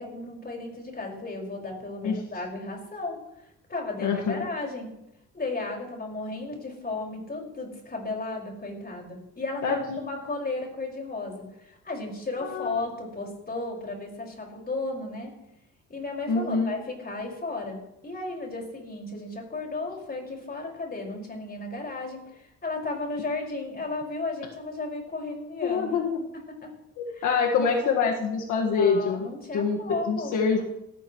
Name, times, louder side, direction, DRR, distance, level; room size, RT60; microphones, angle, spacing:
voice 1, 0.0-3.2 3.7-4.9 5.3-15.3 15.9-26.0 26.5-26.7 27.1-28.0 28.6-30.6, left 3 dB, 30° left, 0 dB, 5.3 m, -34 dB
voice 2, 4.0-4.5 9.6-10.0 12.4-12.8 16.3-16.8 25.6-26.2 27.0-29.3 29.5-30.6, left 5 dB, 80° left, 1 dB, 1.7 m, -25 dB
18.5 x 14.5 x 3.1 m, 0.85 s
cardioid pair, 90°, 30 cm